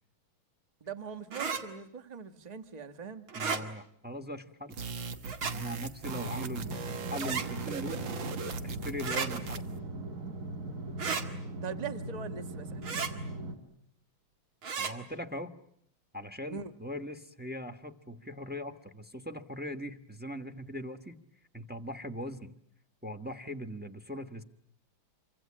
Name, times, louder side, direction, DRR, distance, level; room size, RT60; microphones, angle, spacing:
voice 1, 0.8-3.2 11.6-12.8 16.5-16.7, right 6 dB, 25° right, 9 dB, 1.3 m, -41 dB
sound 1, 1.3-1.6 3.3-3.6 5.2-5.6 7.2-7.5 9.0-9.3 11.0-11.3 12.8-13.1 14.6-14.9, right 5 dB, 85° right, 2.9 m, -33 dB
voice 2, 3.3-4.8 5.5-6.8 7.1-8.1 8.6-9.8 14.8-15.5 16.1-21.2 21.5-22.5 23.0-24.4, equal, 5° right, 7 dB, 0.9 m, -40 dB
sound 2, 4.7-9.8, right 5 dB, 70° right, 2.1 m, -39 dB
sound 3, 6.1-13.5, right 1 dB, 40° right, 3.8 m, -39 dB
27.5 x 25.0 x 8.6 m, 0.69 s
omnidirectional pair, 2.2 m